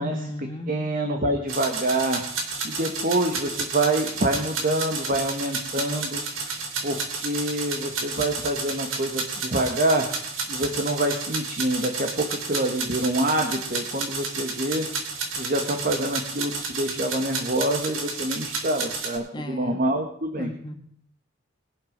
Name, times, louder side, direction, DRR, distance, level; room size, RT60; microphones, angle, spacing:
voice 1, 0.0-0.8 19.3-19.8 20.4-20.7, equal, 25° left, 4 dB, 1.7 m, -34 dB
voice 2, 0.7-2.2 2.6-6.5 6.8-10.1 10.5-14.9 15.3-20.5, right 1 dB, 45° right, 4 dB, 1.5 m, -26 dB
sound 1, 1.5-19.2, right 4 dB, 90° right, 3.2 m, -31 dB
22.0 x 7.9 x 5.3 m, 0.68 s
head